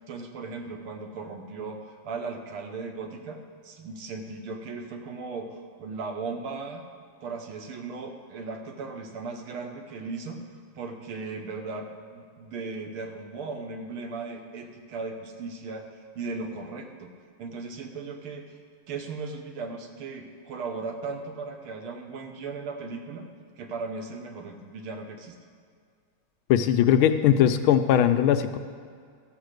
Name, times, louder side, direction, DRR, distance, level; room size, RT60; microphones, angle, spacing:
voice 1, 0.0-6.9 7.2-10.5 10.8-17.1 17.4-18.6 18.9-23.3 23.6-25.4, right 4 dB, 80° right, 4 dB, 2.0 m, -37 dB
voice 2, 26.5-28.6, left 10 dB, 80° left, 8 dB, 1.4 m, -20 dB
13.5 x 7.3 x 6.5 m, 2.1 s
omnidirectional pair, 2.3 m